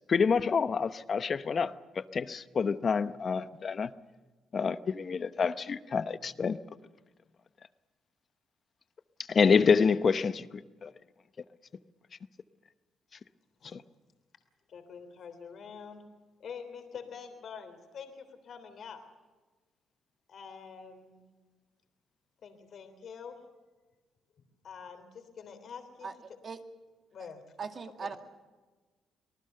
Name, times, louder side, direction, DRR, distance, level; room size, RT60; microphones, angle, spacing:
voice 1, 0.1-3.9 4.5-6.6 9.3-10.9 13.7-13.8, left 5 dB, 45° left, 0.9 m, -27 dB
voice 2, 14.7-16.0 16.4-19.0 20.3-21.2 22.4-23.4 24.6-26.1 27.1-27.4 28.0-28.2, left 6 dB, 60° left, 3.2 m, -46 dB
voice 3, 27.6-28.2, right 5 dB, 45° right, 2.1 m, -38 dB
25.5 x 19.0 x 6.7 m
cardioid pair, 90°, 0 cm